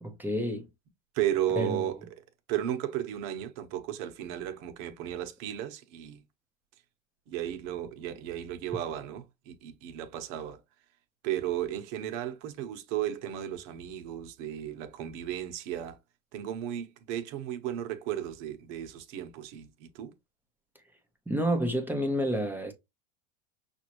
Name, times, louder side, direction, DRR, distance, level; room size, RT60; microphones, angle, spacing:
voice 1, 0.0-0.7 1.6-1.8 21.3-22.7, equal, 5° right, 0.9 m, -29 dB
voice 2, 1.1-2.0 2.5-6.2 7.3-10.6 11.2-16.0 16.3-20.1, right 11 dB, 60° right, 1.2 m, -34 dB
5.8 x 2.7 x 3.0 m
supercardioid pair, 115°, 39 cm